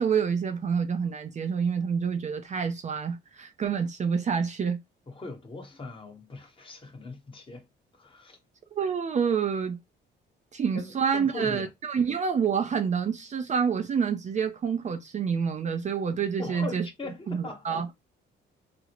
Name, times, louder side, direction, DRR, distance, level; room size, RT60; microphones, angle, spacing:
voice 1, 0.0-4.8 8.7-9.8 10.5-16.9 17.3-17.9, right 6 dB, 35° right, 0.4 m, -27 dB
voice 2, 5.1-7.6 7.9-8.4 10.7-11.7 16.4-17.9, left 3 dB, 25° left, 1.1 m, -40 dB
2.4 x 2.0 x 2.9 m
cardioid pair, 90°, 20 cm